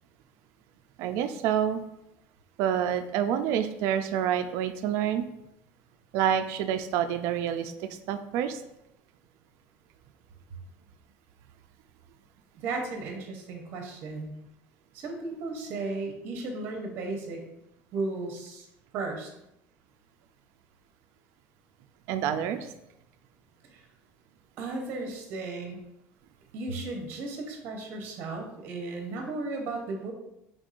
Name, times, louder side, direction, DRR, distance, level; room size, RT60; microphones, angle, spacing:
voice 1, 1.0-1.8 2.6-5.2 6.1-8.6 22.1-22.7, right 9 dB, 55° right, 8 dB, 0.4 m, -28 dB
voice 2, 12.6-14.3 14.9-17.4 17.9-18.6 18.9-19.3 24.6-25.8 26.5-30.1, right 3 dB, 40° right, 3 dB, 0.8 m, -35 dB
5.2 x 3.5 x 2.5 m, 0.84 s
cardioid pair, 175°, 6 cm